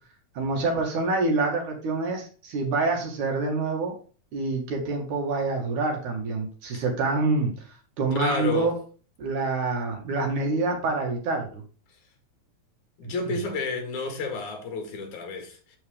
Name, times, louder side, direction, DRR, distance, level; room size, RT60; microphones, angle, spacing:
voice 1, 0.4-4.0 4.3-7.5 8.0-8.7 9.2-11.6 13.0-13.3, right 3 dB, 75° right, 3.5 m, -26 dB
voice 2, 8.2-8.7 13.0-15.8, left 3 dB, 70° left, 3.3 m, -31 dB
12.0 x 4.8 x 3.6 m
omnidirectional pair, 3.6 m